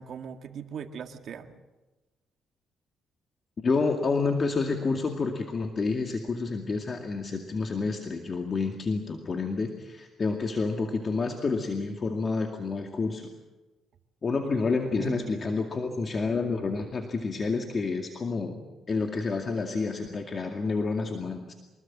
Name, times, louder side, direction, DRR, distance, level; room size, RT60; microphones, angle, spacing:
voice 1, 0.0-1.6 14.4-14.6 14.9-15.4, right 7 dB, 65° right, 7 dB, 1.8 m, -40 dB
voice 2, 3.6-13.3 14.2-21.5, left 4 dB, 40° left, 3 dB, 2.3 m, -29 dB
25.0 x 21.0 x 7.6 m, 1.1 s
cardioid pair, 90°, 0 cm